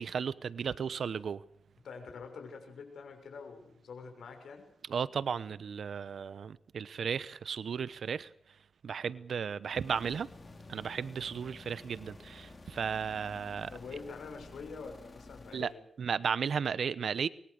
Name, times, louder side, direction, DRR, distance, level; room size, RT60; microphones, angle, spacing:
voice 1, 0.0-1.4 4.9-8.3 8.8-10.3 10.7-13.7 15.5-15.7 16.0-17.3, right 6 dB, 70° right, 0.9 m, -34 dB
voice 2, 1.8-4.7 13.7-15.8, left 5 dB, 80° left, 6.4 m, -46 dB
sound 1, 9.7-15.8, left 3 dB, 35° left, 4.8 m, -52 dB
24.0 x 22.0 x 6.7 m
cardioid pair, 80°, 0 cm